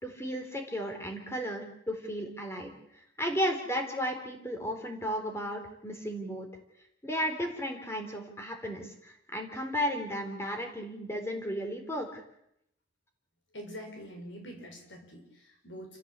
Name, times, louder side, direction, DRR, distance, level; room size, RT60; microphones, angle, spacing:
voice 1, 0.0-2.7 3.2-6.5 7.0-12.2, equal, 15° left, 3 dB, 4.1 m, -34 dB
voice 2, 13.5-16.0, equal, 90° left, 3 dB, 6.7 m, -45 dB
28.0 x 15.5 x 8.5 m, 0.78 s
head